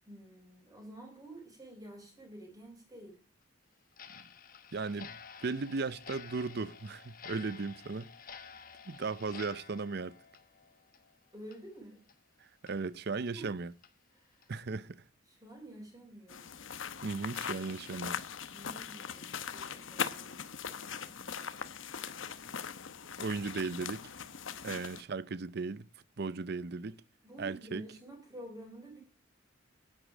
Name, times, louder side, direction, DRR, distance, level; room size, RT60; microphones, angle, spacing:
voice 1, 0.1-3.2 11.3-12.0 13.3-13.5 14.1-14.5 15.3-16.5 18.5-20.4 27.2-29.0, right 1 dB, 20° right, 4.7 m, -49 dB
Clock, 3.9-11.2 11.5-11.6 12.1-12.2 12.7-12.8 13.3-13.4 13.8-13.9 14.4-14.6, left 6 dB, 45° left, 1.2 m, -51 dB
voice 2, 4.7-8.1 8.9-10.2 12.4-13.7 14.5-15.0 17.0-18.2 23.2-24.1 24.6-25.9 26.2-27.0 27.4-27.8, right 4 dB, 55° right, 0.6 m, -36 dB
sound 1, 16.3-25.0, left 7 dB, 75° left, 1.0 m, -40 dB
10.5 x 9.9 x 4.9 m
head